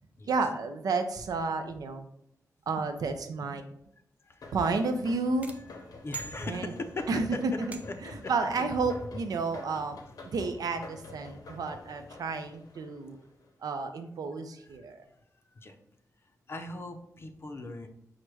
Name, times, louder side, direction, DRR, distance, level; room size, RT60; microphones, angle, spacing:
voice 1, 0.3-2.1 2.7-3.6 4.5-5.5 6.4-6.7 7.1-13.2 13.6-15.0, right 4 dB, 80° right, 7 dB, 0.5 m, -31 dB
voice 2, 4.2-4.6 5.6-5.7 6.0-7.4 8.1-8.2 14.6-14.8 15.5-15.8 16.5-17.9, left 2 dB, 40° left, 6 dB, 0.5 m, -39 dB
sound 1, 4.4-13.5, left 2 dB, 75° left, 0.7 m, -48 dB
sound 2, 5.4-7.0 7.7-8.2, right 5 dB, 20° right, 0.4 m, -44 dB
4.7 x 2.1 x 4.6 m, 0.74 s
wide cardioid pair, 125°, 6 cm